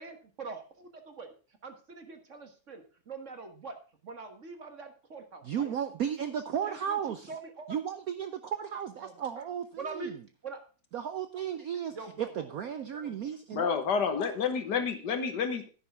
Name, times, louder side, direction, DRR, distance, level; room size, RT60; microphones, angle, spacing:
voice 1, 0.0-1.3 1.6-3.7 4.0-5.7 6.7-7.7 9.0-9.5 9.8-10.2 10.4-10.6 11.9-12.5 12.8-13.1, right 4 dB, 40° right, 6 dB, 1.6 m, -44 dB
voice 2, 5.4-7.3 7.7-10.2 10.9-13.7, right 8 dB, 65° right, 10 dB, 0.9 m, -34 dB
voice 3, 13.5-15.7, left 6 dB, 60° left, 9 dB, 1.7 m, -29 dB
10.5 x 10.0 x 3.5 m, 0.36 s
omnidirectional pair, 2.2 m